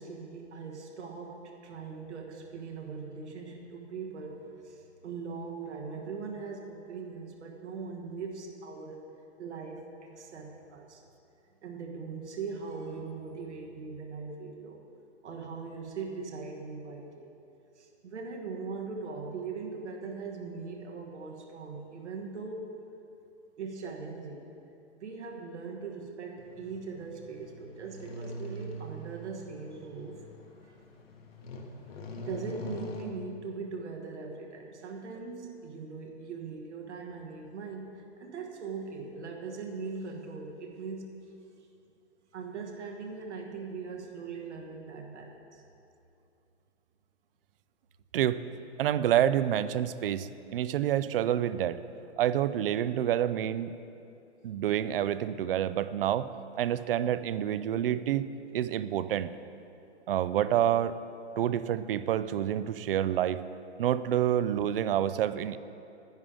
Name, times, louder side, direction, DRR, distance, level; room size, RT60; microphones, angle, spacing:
voice 1, 0.0-9.0 9.4-11.0 11.6-14.8 15.2-17.3 17.7-22.8 23.6-24.5 24.9-30.2 30.6-30.8 32.2-41.1 42.3-45.6, right 4 dB, 75° right, 1 dB, 1.3 m, -40 dB
sound 1, 26.4-33.0, left 1 dB, 55° left, 1.3 m, -44 dB
voice 2, 48.8-51.8 52.2-53.8 54.4-56.3 56.6-58.3 58.5-59.3 60.1-61.0 61.4-63.4 63.8-65.6, right 11 dB, 55° right, 14 dB, 0.4 m, -28 dB
10.5 x 9.7 x 3.7 m, 2.7 s
hypercardioid pair, 140°, 35 cm